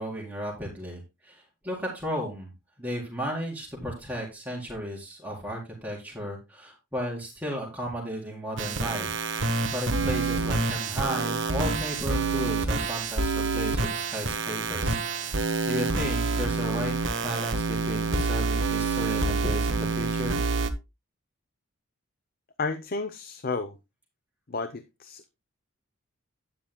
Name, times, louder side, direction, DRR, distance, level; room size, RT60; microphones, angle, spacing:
voice 1, 0.0-2.5 2.8-9.1 9.4-16.9 17.2-20.4, equal, 5° right, 4.1 m, -34 dB
sound 1, 8.6-20.7, right 3 dB, 55° right, 1.3 m, -27 dB
voice 2, 22.6-23.7 24.5-25.3, left 3 dB, 40° left, 0.7 m, -32 dB
12.5 x 10.0 x 2.2 m
head